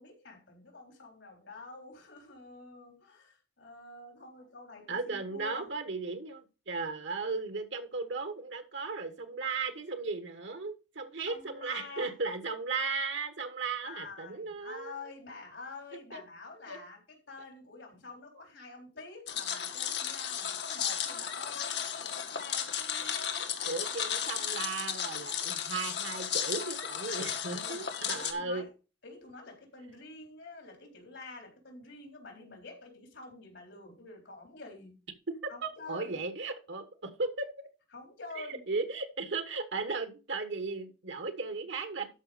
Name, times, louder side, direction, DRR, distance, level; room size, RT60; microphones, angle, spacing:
voice 1, 0.0-5.7 11.2-12.1 13.8-23.5 26.9-27.8 28.1-28.7 29.0-35.0 35.5-36.2 37.9-38.6, left 3 dB, 90° left, 3.8 m, -48 dB
voice 2, 4.9-14.9 16.1-16.2 16.7-16.8 23.6-28.6 35.4-37.7 38.4-42.1, right 4 dB, 85° right, 1.3 m, -36 dB
sound 1, 19.3-28.3, left 8 dB, 70° left, 1.6 m, -34 dB
12.5 x 5.1 x 4.9 m
head